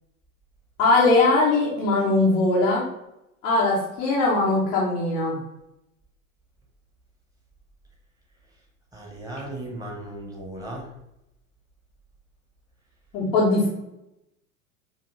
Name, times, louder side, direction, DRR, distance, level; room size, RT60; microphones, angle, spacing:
voice 1, 0.8-2.9 3.4-5.4 13.1-13.7, left 2 dB, 10° left, -7 dB, 0.3 m, -20 dB
voice 2, 8.9-10.9, right 1 dB, 10° right, -2 dB, 0.8 m, -36 dB
5.1 x 2.3 x 2.9 m, 0.85 s
figure-of-eight pair, 90°, 44 cm